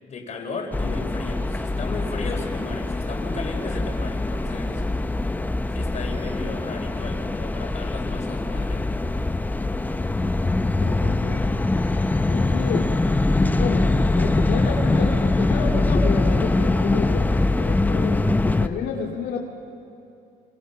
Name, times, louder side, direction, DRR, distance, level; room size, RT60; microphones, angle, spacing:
voice 1, 0.0-4.8 5.7-8.8, left 3 dB, 45° left, 2 dB, 4.4 m, -35 dB
sound 1, 0.7-18.7, left 2 dB, 10° left, 0.7 m, -23 dB
voice 2, 10.8-11.4 12.2-13.0 13.3-13.9 14.1-19.4, left 6 dB, 80° left, -2 dB, 2.3 m, -31 dB
29.0 x 23.5 x 5.7 m, 2.6 s
cardioid pair, 110°, 17 cm